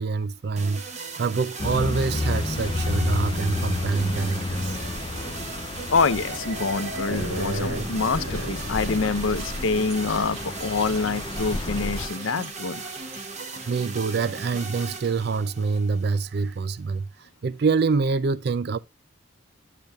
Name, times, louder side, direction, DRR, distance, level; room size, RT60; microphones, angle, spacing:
voice 1, 0.0-4.8 10.2-10.3 13.7-18.8, right 4 dB, 50° right, 0.4 m, -26 dB
sound 1, 0.6-16.6, right 4 dB, 35° right, 1.0 m, -38 dB
sound 2, 1.6-12.1, left 2 dB, 25° left, 0.4 m, -31 dB
sound 3, 3.6-3.9 4.3-4.7 5.1-5.2 6.0-15.1, right 1 dB, 90° right, 4.2 m, -37 dB
voice 2, 5.9-12.8, left 4 dB, 75° left, 0.7 m, -26 dB
10.5 x 6.7 x 2.3 m
head